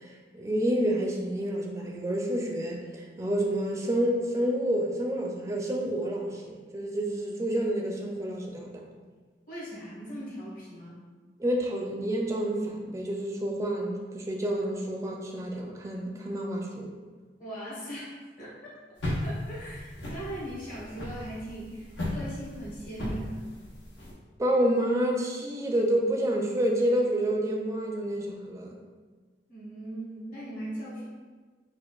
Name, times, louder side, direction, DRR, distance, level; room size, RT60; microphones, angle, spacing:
voice 1, 0.0-8.7 11.4-16.9 24.4-28.8, right 1 dB, 15° right, -1 dB, 0.4 m, -29 dB
voice 2, 9.5-11.0 17.4-18.1 18.4-18.7 19.2-23.5 29.5-31.1, right 1 dB, 50° left, -8 dB, 1.4 m, -39 dB
sound 1, 19.0-24.1, left 1 dB, 85° left, 0.8 m, -35 dB
4.3 x 2.4 x 2.3 m, 1.4 s
head